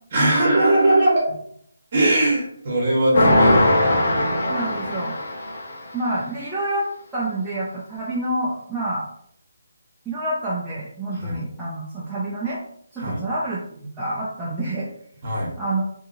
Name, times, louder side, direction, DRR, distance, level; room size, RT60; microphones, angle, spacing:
voice 1, 0.1-1.3 1.9-4.2 11.2-11.4 13.0-13.2 15.2-15.5, right 1 dB, 30° right, -3 dB, 1.1 m, -20 dB
sound 1, 3.1-5.9, left 1 dB, 45° left, 0.7 m, -20 dB
voice 2, 3.1-3.9 4.4-5.1 5.9-9.0 10.1-12.6 12.9-14.9 15.6-15.8, right 2 dB, 5° right, -10 dB, 0.4 m, -28 dB
2.7 x 2.6 x 2.6 m, 0.67 s
hypercardioid pair, 170°, 0 cm